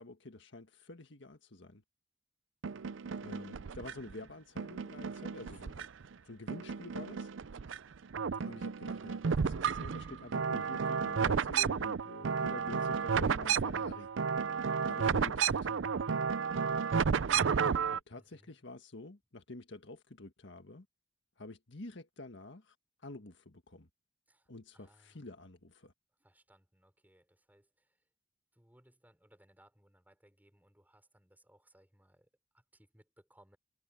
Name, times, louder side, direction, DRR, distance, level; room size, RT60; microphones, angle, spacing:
voice 1, 0.0-1.8 3.2-5.9 6.3-7.3 8.4-14.1 14.8-15.7 17.9-20.9 21.4-22.7 23.0-23.9 24.5-25.9, left 2 dB, 60° left, 1.7 m, -48 dB
Urban Tribe, 2.6-4.1 4.6-6.1 6.5-7.8 8.1-18.0, right 6 dB, 65° right, 0.5 m, -32 dB
voice 2, 5.4-5.8 18.1-18.6 24.3-25.3 26.2-28.1 28.5-33.6, right 1 dB, 10° right, 5.4 m, -66 dB
head